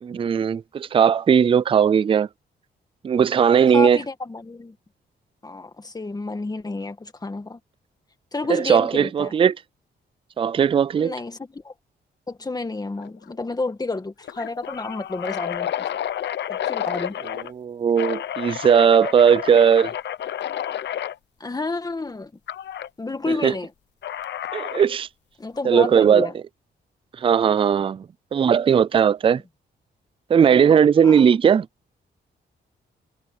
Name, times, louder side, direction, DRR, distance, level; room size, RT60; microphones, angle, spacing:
voice 1, 0.0-2.3 3.0-4.0 8.5-9.6 10.4-11.1 17.5-19.9 23.4-23.5 24.5-25.1 25.6-26.3 27.2-28.0 28.3-29.4 30.3-31.7, right 7 dB, 30° right, 0.3 m, -18 dB
voice 2, 3.7-4.8 5.4-7.6 8.3-9.3 11.0-11.7 12.3-15.7 16.5-17.2 21.4-22.3 23.0-23.7 25.4-26.3 31.0-31.3, left 3 dB, 20° left, 1.9 m, -30 dB
sound 1, 13.0-13.3 13.6-13.7 14.2-17.5 18.0-21.2 22.5-22.9 24.0-25.0, left 10 dB, 70° left, 0.8 m, -30 dB
cardioid pair, 110°, 19 cm